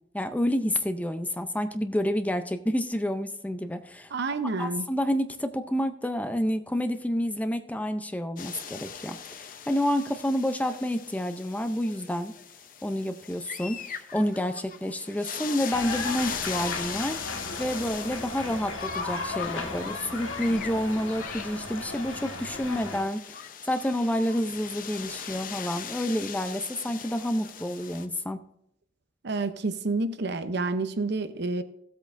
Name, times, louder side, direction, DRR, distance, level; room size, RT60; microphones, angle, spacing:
voice 1, 0.1-4.1 4.6-12.3 12.8-17.2 17.6-28.4, equal, 10° left, 8 dB, 0.5 m, -29 dB
voice 2, 4.1-4.9 29.2-31.6, right 3 dB, 60° right, 10 dB, 0.7 m, -29 dB
sound 1, 8.4-28.1, left 7 dB, 45° left, 0.7 m, -40 dB
sound 2, 15.7-23.0, left 3 dB, 90° left, 1.6 m, -36 dB
16.0 x 8.2 x 2.6 m, 0.74 s
head